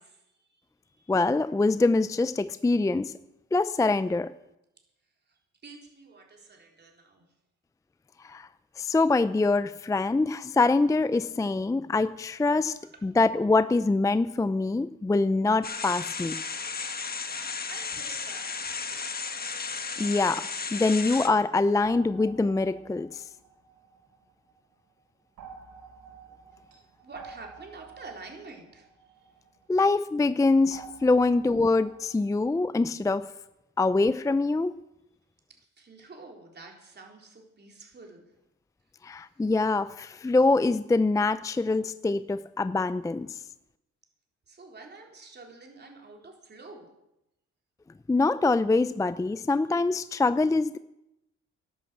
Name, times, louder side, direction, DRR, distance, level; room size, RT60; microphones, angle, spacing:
voice 1, 0.0-1.1 5.3-7.2 12.8-12.9 17.3-19.2 27.0-29.4 35.5-38.3 39.0-39.5 44.5-46.9, right 3 dB, 35° right, 1 dB, 3.9 m, -48 dB
voice 2, 1.1-3.1 3.5-4.3 8.2-8.5 8.8-16.4 20.0-23.2 29.7-33.3 33.8-34.7 39.0-43.3 48.1-50.8, left 3 dB, 10° left, 14 dB, 0.5 m, -24 dB
sound 1, 15.6-21.3, left 5 dB, 30° left, 1.3 m, -34 dB
sound 2, 21.8-24.6 25.4-29.9 30.7-32.5, right 5 dB, 85° right, 4.7 m, -50 dB
12.0 x 11.0 x 7.6 m, 0.89 s
cardioid pair, 90°, 30 cm